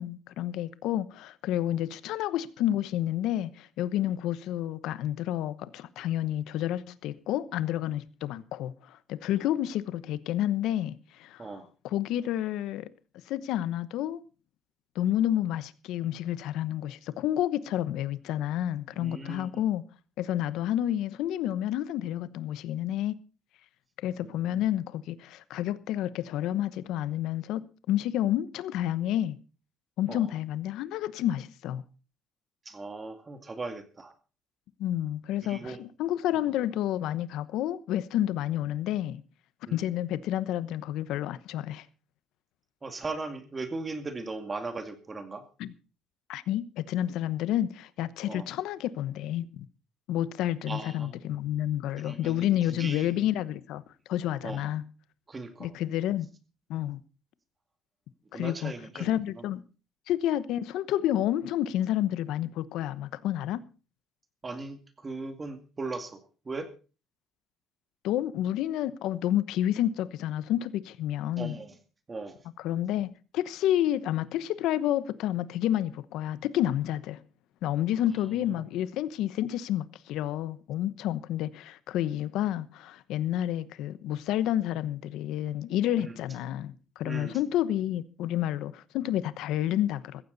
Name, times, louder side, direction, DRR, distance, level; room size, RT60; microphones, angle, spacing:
voice 1, 0.0-11.5 11.8-12.9 13.3-14.2 14.9-19.8 20.2-23.1 24.0-29.4 30.0-31.8 34.8-39.2 39.7-41.8 45.6-45.7 46.3-49.7 50.1-53.8 54.1-54.9 55.6-56.3 56.7-57.0 58.3-59.6 60.1-63.6 68.0-71.6 72.6-77.2 77.6-90.2, left 12 dB, 80° left, 1.0 m, -30 dB
voice 2, 19.0-19.7 24.2-24.7 30.1-30.3 32.7-34.1 35.4-35.8 36.4-36.5 39.7-39.9 42.8-45.4 48.3-48.5 50.7-51.2 52.0-53.3 54.4-54.7 55.3-55.7 58.3-59.1 59.4-59.5 64.4-66.7 71.4-71.8 72.1-72.4 86.0-86.2 87.0-87.4, right 3 dB, 25° right, 2.3 m, -38 dB
15.5 x 15.0 x 4.1 m
cardioid pair, 120°, 0 cm